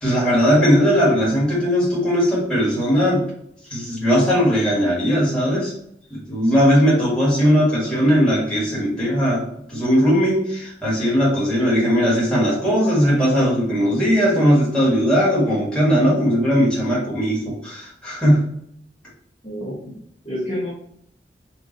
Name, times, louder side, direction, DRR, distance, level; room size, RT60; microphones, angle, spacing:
voice 1, 0.0-3.3 3.7-5.7 6.1-9.4 9.7-18.4, equal, 5° left, -7 dB, 1.6 m, -18 dB
voice 2, 19.4-19.9 20.2-20.7, left 1 dB, 30° left, -7 dB, 1.2 m, -29 dB
4.6 x 2.6 x 3.9 m, 0.72 s
head